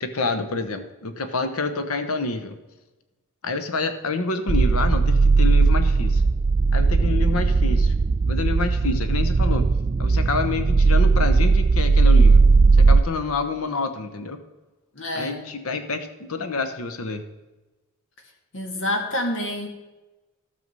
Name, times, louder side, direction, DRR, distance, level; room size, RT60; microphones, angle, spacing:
voice 1, 0.0-2.6 3.4-6.2 6.7-7.9 8.3-9.7 10.0-12.4 12.8-14.4 15.2-17.2, left 3 dB, 80° left, 9 dB, 1.0 m, -28 dB
sound 1, 4.5-13.0, right 4 dB, 30° right, 0.3 m, -17 dB
voice 2, 14.9-15.5 18.5-19.7, left 1 dB, 60° left, 4 dB, 1.6 m, -27 dB
12.5 x 6.8 x 5.4 m, 1.1 s
head